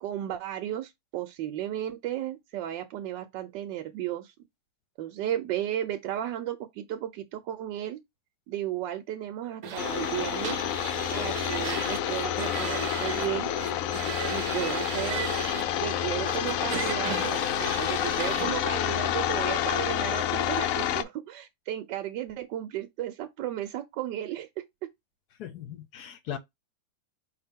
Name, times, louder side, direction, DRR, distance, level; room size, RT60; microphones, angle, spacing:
voice 1, 0.0-4.3 5.0-8.0 8.5-10.6 11.1-13.5 14.3-15.3 15.8-24.6, right 12 dB, 75° right, 1.3 m, -34 dB
sound 1, 9.6-13.3 13.6-15.6 16.3-18.5, right 8 dB, 60° right, 1.0 m, -37 dB
sound 2, 9.8-21.0, left 10 dB, 85° left, 0.7 m, -29 dB
voice 2, 25.4-26.4, left 10 dB, 70° left, 1.1 m, -38 dB
5.2 x 2.8 x 3.5 m
omnidirectional pair, 2.0 m